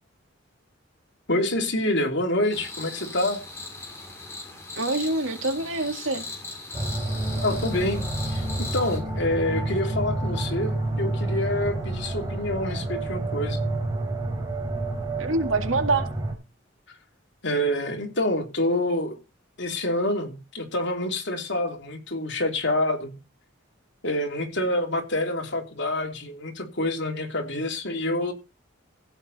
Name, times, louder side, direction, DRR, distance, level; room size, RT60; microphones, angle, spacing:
voice 1, 1.3-3.4 7.4-13.6 16.9-17.0 17.4-19.2 19.6-23.1 24.0-28.3, left 1 dB, 60° left, 3.2 m, -27 dB
sound 1, 2.5-9.0, left 3 dB, 15° left, 6.3 m, -38 dB
voice 2, 4.8-6.2 15.2-16.1, right 2 dB, 75° right, 2.2 m, -25 dB
sound 2, 6.7-16.3, right 2 dB, 15° right, 5.2 m, -29 dB
15.5 x 8.5 x 4.2 m
head